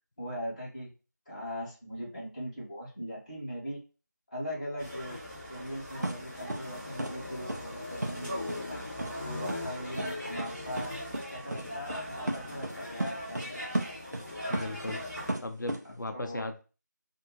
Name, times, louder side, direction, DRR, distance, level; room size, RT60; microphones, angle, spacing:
voice 1, 0.2-0.9 1.2-3.8 4.3-5.2 5.5-8.8 9.2-10.9 11.3-13.8 16.1-16.5, equal, 20° left, -8 dB, 1.3 m, -40 dB
sound 1, 4.8-15.3, left 1 dB, 5° right, 0.6 m, -39 dB
sound 2, 6.0-6.2 6.5-6.6 7.0-7.1 7.5-7.6 8.0-8.1 8.5-8.6 9.0-9.1 9.5-9.6 10.0-10.1 10.4-10.5 10.8-10.9 11.1-11.2 11.5-11.6 11.9-12.0 12.3-12.7 13.0-13.5 13.7-15.0 15.3-15.8, right 1 dB, 65° right, 0.6 m, -33 dB
voice 2, 14.5-15.0 15.4-16.6, left 2 dB, 90° left, 5 dB, 0.5 m, -37 dB
2.6 x 2.6 x 3.0 m, 0.33 s
figure-of-eight pair, 175°, 10 cm